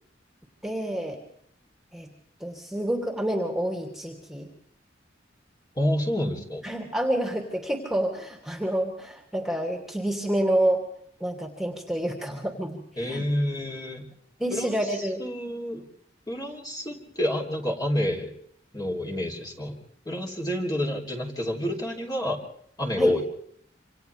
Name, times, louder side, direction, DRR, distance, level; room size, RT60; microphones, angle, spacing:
voice 1, 0.6-1.2 1.9-2.1 2.4-4.5 6.6-10.8 11.2-13.2 14.4-15.2 23.0-23.1, right 1 dB, ahead, 1 dB, 2.8 m, -28 dB
voice 2, 5.8-6.7 13.0-14.0 14.5-15.8 16.3-18.3 18.7-19.8 20.1-22.4 22.8-23.2, left 1 dB, 20° left, -1 dB, 3.5 m, -28 dB
27.5 x 27.0 x 3.5 m, 0.66 s
head